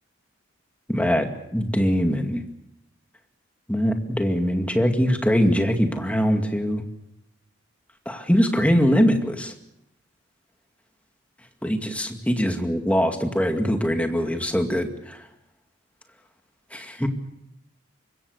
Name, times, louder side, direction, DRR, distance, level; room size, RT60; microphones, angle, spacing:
voice 1, 0.9-2.4 3.7-6.8 8.1-9.5 11.6-15.2 16.7-17.1, equal, 5° left, 5 dB, 2.2 m, -22 dB
25.5 x 22.5 x 6.6 m, 0.82 s
head